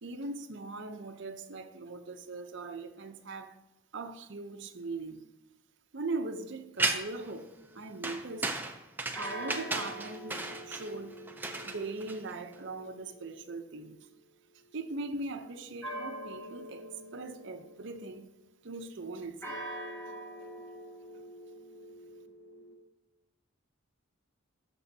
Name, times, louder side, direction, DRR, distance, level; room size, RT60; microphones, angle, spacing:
voice 1, 0.0-3.6 3.9-5.2 5.9-8.6 9.1-11.2 11.6-14.1 14.7-18.3 18.6-19.6, right 3 dB, 55° right, 0.6 m, -40 dB
sound 1, 6.8-7.3 8.0-12.5, right 2 dB, 10° right, 0.4 m, -35 dB
sound 2, 7.5-8.0 9.1-14.0 15.8-18.2 19.4-22.7, right 1 dB, 10° left, 2.1 m, -45 dB
12.5 x 6.1 x 2.7 m
head